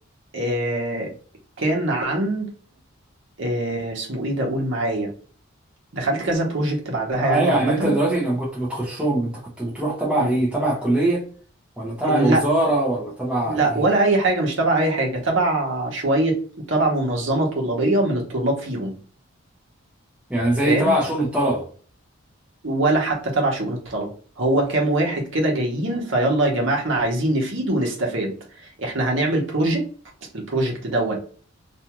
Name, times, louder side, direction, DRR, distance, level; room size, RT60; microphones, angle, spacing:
voice 1, 0.3-1.1 1.6-2.5 3.4-5.1 5.9-7.9 10.2-10.3 12.0-12.4 13.4-16.4 16.7-18.9 20.7-20.9 22.6-24.1 24.4-29.9 30.3-31.2, right 2 dB, 60° right, 1.0 m, -22 dB
voice 2, 7.2-11.3 11.8-13.8 20.3-21.7, right 1 dB, 5° right, 0.7 m, -22 dB
2.6 x 2.4 x 2.9 m
head